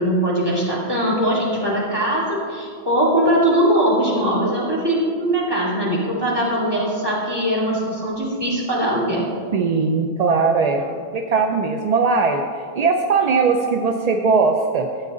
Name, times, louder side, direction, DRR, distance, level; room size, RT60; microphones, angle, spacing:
voice 1, 0.0-9.3, right 1 dB, 20° right, -5 dB, 2.6 m, -21 dB
voice 2, 9.5-10.8 11.1-14.9, right 4 dB, 50° right, 4 dB, 0.5 m, -19 dB
13.0 x 8.3 x 3.7 m, 2.2 s
omnidirectional pair, 1.1 m